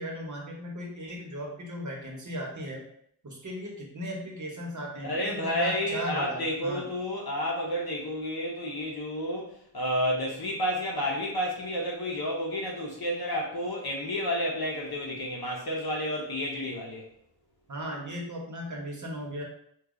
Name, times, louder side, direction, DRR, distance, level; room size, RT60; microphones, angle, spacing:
voice 1, 0.0-2.8 3.2-6.8 17.7-19.4, equal, 45° right, -1 dB, 1.0 m, -37 dB
voice 2, 5.0-17.1, equal, 65° left, -2 dB, 0.8 m, -30 dB
3.1 x 2.3 x 3.7 m, 0.68 s
wide cardioid pair, 80°, 41 cm